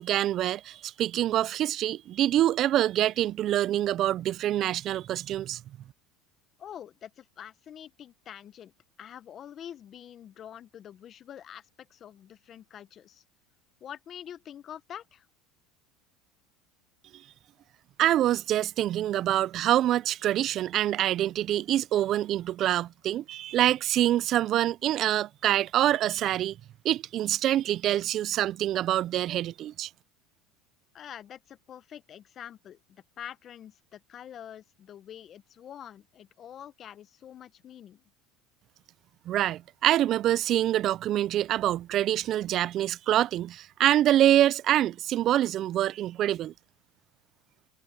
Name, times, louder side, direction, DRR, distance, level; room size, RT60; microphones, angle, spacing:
voice 1, 0.0-5.6 18.0-26.6 26.8-29.9 39.3-46.5, right 12 dB, 45° right, 0.4 m, -25 dB
voice 2, 6.6-8.7 9.0-13.2 13.8-15.3 30.9-38.0, left 10 dB, 35° left, 0.8 m, -46 dB
supercardioid pair, 120°, 0 cm